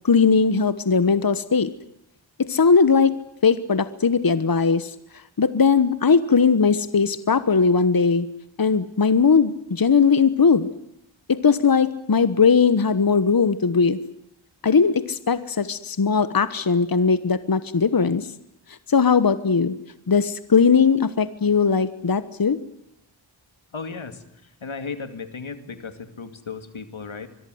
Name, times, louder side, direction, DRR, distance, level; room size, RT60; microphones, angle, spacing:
voice 1, 0.0-1.7 2.4-3.1 3.4-4.9 5.4-8.3 8.6-10.7 11.3-14.0 14.6-18.3 18.9-19.7 20.1-22.6, left 5 dB, 50° left, 14 dB, 1.2 m, -19 dB
voice 2, 23.7-27.3, left 5 dB, 90° left, 10 dB, 2.5 m, -35 dB
25.5 x 22.0 x 7.9 m, 0.77 s
wide cardioid pair, 65°, 46 cm